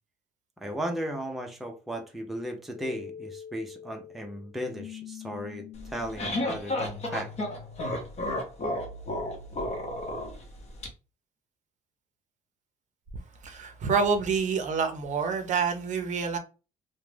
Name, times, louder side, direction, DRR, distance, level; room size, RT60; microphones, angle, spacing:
voice 1, 0.6-7.3, equal, ahead, 0.5 m, -36 dB
sound 1, 2.7-10.6, left 6 dB, 80° left, 0.4 m, -46 dB
sound 2, 5.8-10.9, left 1 dB, 40° left, 0.8 m, -32 dB
voice 2, 13.4-16.4, right 5 dB, 45° right, 0.6 m, -27 dB
2.4 x 2.1 x 3.2 m
cardioid pair, 110°, 17 cm